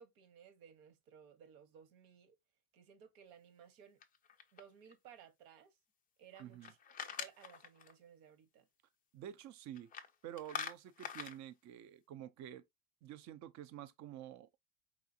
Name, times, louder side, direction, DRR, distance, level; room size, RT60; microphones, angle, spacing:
voice 1, 0.0-2.4 2.7-4.0 4.5-5.8 6.2-8.7, right 8 dB, 70° right, 1.3 m, -59 dB
sound 1, 4.0-4.9 6.3-7.9 9.8-10.1 10.4-11.4, left 7 dB, 20° left, 0.3 m, -45 dB
voice 2, 6.4-6.7 9.1-9.9 10.2-12.6 13.0-14.5, right 11 dB, 35° right, 0.5 m, -49 dB
4.9 x 3.2 x 2.7 m
supercardioid pair, 125°, 49 cm